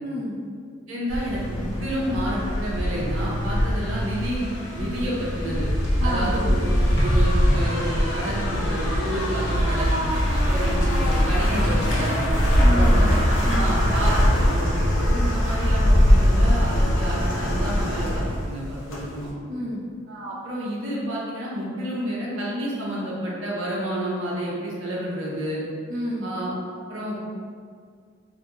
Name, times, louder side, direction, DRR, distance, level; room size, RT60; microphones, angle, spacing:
voice 1, 0.0-0.4 6.0-6.4 12.6-13.8 19.5-19.8 25.9-26.3, equal, 45° right, -7 dB, 0.4 m, -29 dB
voice 2, 0.9-5.7 6.0-6.7 7.0-10.0 10.5-12.2 12.7-13.1 13.5-19.3 20.1-25.6 26.2-26.5 26.9-27.2, right 1 dB, 85° right, -6 dB, 0.6 m, -30 dB
sound 1, 1.1-19.3, equal, 85° left, 0.6 m, -22 dB
2.8 x 2.2 x 2.3 m, 2.1 s
head